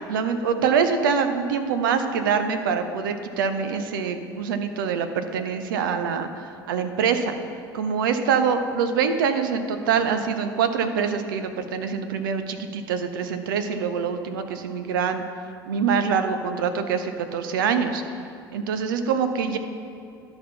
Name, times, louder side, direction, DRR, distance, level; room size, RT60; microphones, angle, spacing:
voice 1, 0.1-7.4 7.7-15.2 15.7-18.0 18.5-19.6, right 6 dB, 65° right, 8 dB, 0.6 m, -24 dB
11.5 x 4.4 x 5.6 m, 2.5 s
figure-of-eight pair, 70°, 12 cm